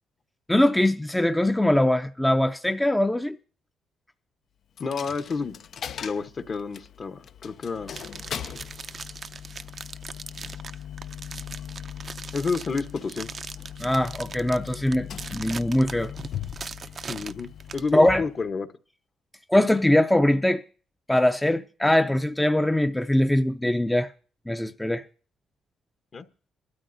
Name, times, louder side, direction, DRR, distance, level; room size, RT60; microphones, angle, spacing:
voice 1, 0.5-3.4 13.8-16.1 17.9-18.2 19.5-20.6 21.1-24.1 24.5-25.0, left 1 dB, 5° left, 0.5 m, -22 dB
Coin (dropping), 4.8-18.5, left 9 dB, 60° left, 0.5 m, -40 dB
voice 2, 4.8-5.6 6.0-8.0 12.3-13.3 17.1-18.7 26.1-26.2, left 4 dB, 45° left, 1.1 m, -30 dB
sound 1, 7.9-17.9, right 5 dB, 45° right, 0.5 m, -40 dB
22.0 x 12.5 x 2.7 m
cardioid pair, 90°, 0 cm